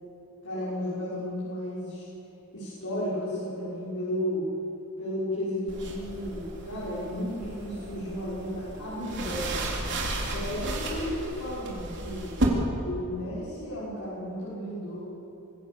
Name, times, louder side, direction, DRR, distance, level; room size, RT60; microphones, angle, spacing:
voice 1, 0.4-2.0 2.5-4.5 5.0-10.0 10.3-12.3 12.8-15.0, equal, 90° left, -10 dB, 6.1 m, -33 dB
sound 1, 5.7-12.4, right 2 dB, 55° right, 3.6 m, -34 dB
24.0 x 16.0 x 7.3 m, 2.9 s
head